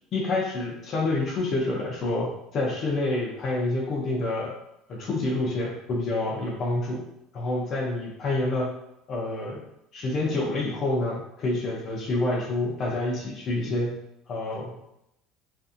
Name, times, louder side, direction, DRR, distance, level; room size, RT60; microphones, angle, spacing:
voice 1, 0.1-4.5 4.9-7.0 7.3-8.8 9.1-9.6 9.9-13.9 14.3-14.8, left 2 dB, 30° left, -2 dB, 0.5 m, -28 dB
2.6 x 2.5 x 2.4 m, 0.80 s
cardioid pair, 170°, 0 cm